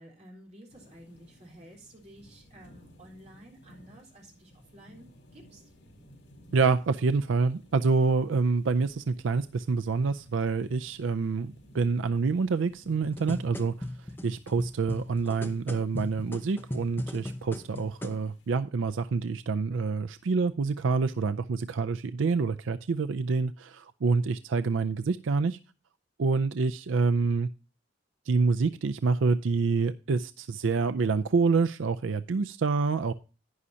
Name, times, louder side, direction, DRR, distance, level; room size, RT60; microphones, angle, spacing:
voice 1, 0.0-5.7, right 1 dB, 35° right, 3.8 m, -52 dB
sound 1, 0.7-18.6, equal, 70° left, 4.9 m, -57 dB
voice 2, 6.5-13.7 14.2-25.6 26.2-27.5 28.3-33.1, right 4 dB, 90° right, 0.5 m, -27 dB
cajon ramble, 12.9-18.2 18.9-19.0, left 1 dB, 10° left, 0.8 m, -38 dB
11.0 x 9.7 x 2.8 m
head